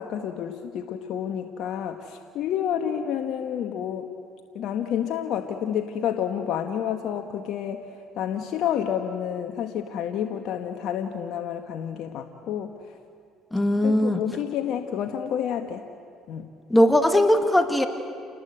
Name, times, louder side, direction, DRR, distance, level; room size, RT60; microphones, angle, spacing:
voice 1, 0.0-4.1 4.5-7.8 8.1-12.8 13.8-15.8 16.3-16.5, left 9 dB, 65° left, 5 dB, 1.4 m, -29 dB
voice 2, 13.5-14.2 16.7-17.9, left 1 dB, 10° left, 7 dB, 2.1 m, -19 dB
28.5 x 20.0 x 8.0 m, 2.4 s
supercardioid pair, 80°, 0 cm